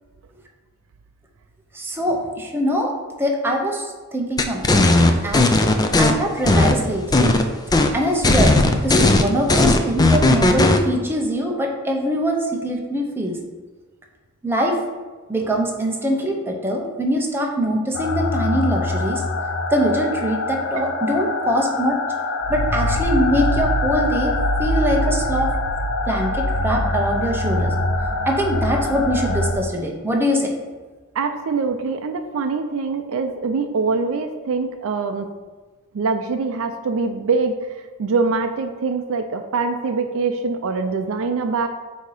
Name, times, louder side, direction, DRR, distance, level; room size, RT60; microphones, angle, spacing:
voice 1, 1.7-2.9 3.2-3.8 4.1-4.9 5.2-5.6 6.0-7.4 7.9-8.6 8.8-13.4 14.4-14.8 15.3-19.2 19.7-22.0 22.5-25.5 26.1-27.7 28.3-30.5, equal, 10° right, 0 dB, 0.8 m, -23 dB
sound 1, 4.4-6.1 6.5-7.4 7.7-7.9 8.2-10.8, left 2 dB, 15° left, 0.4 m, -15 dB
sound 2, 17.9-29.5, left 2 dB, 60° left, 0.6 m, -23 dB
voice 2, 31.2-35.3 35.9-37.5 38.0-41.7, right 4 dB, 65° right, 7 dB, 0.4 m, -23 dB
8.0 x 2.8 x 4.8 m, 1.3 s
head